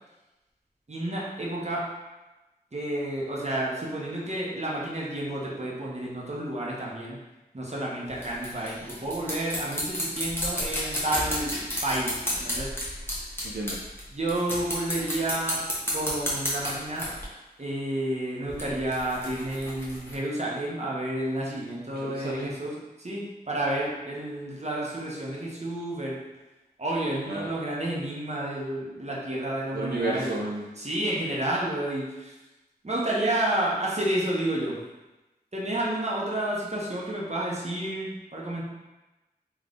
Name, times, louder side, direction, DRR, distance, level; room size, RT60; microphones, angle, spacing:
voice 1, 0.9-1.8 2.7-7.2 7.5-12.7 14.1-15.6 15.9-17.1 17.6-26.2 26.8-30.3 30.8-32.4 32.8-34.8 35.5-38.6, right 1 dB, 40° right, -4 dB, 1.0 m, -30 dB
sound 1, 8.1-14.0 14.3-17.2 18.5-20.2, equal, 15° left, 1.2 m, -32 dB
voice 2, 13.4-13.8 22.0-22.5 27.3-27.5 29.7-30.6, right 2 dB, 70° right, -5 dB, 0.6 m, -32 dB
3.6 x 3.1 x 3.8 m, 1.1 s
wide cardioid pair, 60°, 17 cm